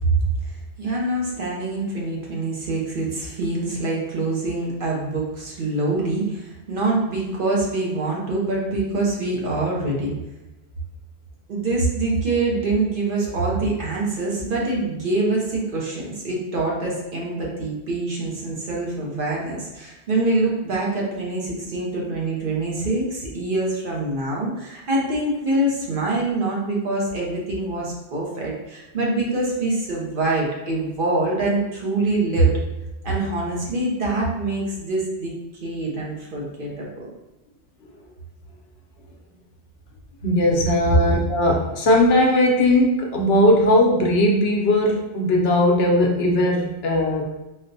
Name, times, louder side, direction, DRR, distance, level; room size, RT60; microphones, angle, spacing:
voice 1, 0.0-10.1 11.5-32.5 33.0-35.3 35.6-37.1 40.9-41.0, right 2 dB, 55° right, -3 dB, 0.8 m, -24 dB
voice 2, 40.2-47.2, left 1 dB, 70° left, 0 dB, 0.8 m, -18 dB
4.0 x 2.1 x 2.6 m, 0.98 s
omnidirectional pair, 1.1 m